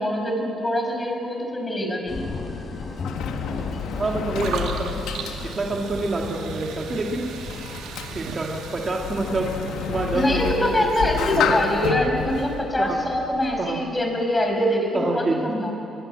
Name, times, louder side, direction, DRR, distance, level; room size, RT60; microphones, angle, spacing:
voice 1, 0.0-2.3 10.1-15.8, left 1 dB, 15° left, 2 dB, 5.5 m, -24 dB
sound 1, 2.1-8.4, left 3 dB, 45° left, 3.7 m, -36 dB
Sliding door, 2.5-13.9, left 7 dB, 85° left, 1.7 m, -31 dB
voice 2, 4.0-4.9 5.4-7.3 8.1-9.5 9.9-11.1 11.5-11.8 12.8-13.0 13.6-13.8 14.9-15.5, right 2 dB, 35° right, 0 dB, 2.4 m, -27 dB
sound 2, 4.4-11.9, right 6 dB, 85° right, 2.1 m, -38 dB
22.5 x 22.5 x 7.7 m, 3.0 s
cardioid pair, 90°, 0 cm